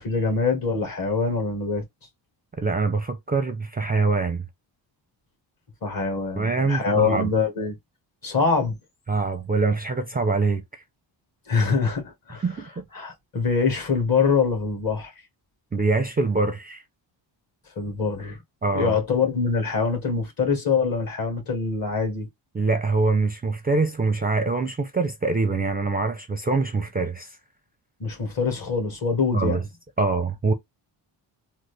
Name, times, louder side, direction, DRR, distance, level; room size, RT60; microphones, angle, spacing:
voice 1, 0.0-1.8 5.8-7.8 8.2-8.8 11.5-12.4 12.9-15.1 17.7-18.4 18.7-22.3 28.0-29.6, left 5 dB, 45° left, 1.7 m, -24 dB
voice 2, 2.6-4.5 6.4-7.3 9.1-10.8 12.4-12.8 15.7-16.8 18.6-18.9 22.5-27.4 29.3-29.6 30.0-30.5, right 3 dB, 20° right, 0.5 m, -24 dB
3.8 x 2.0 x 3.3 m
cardioid pair, 115°, 48 cm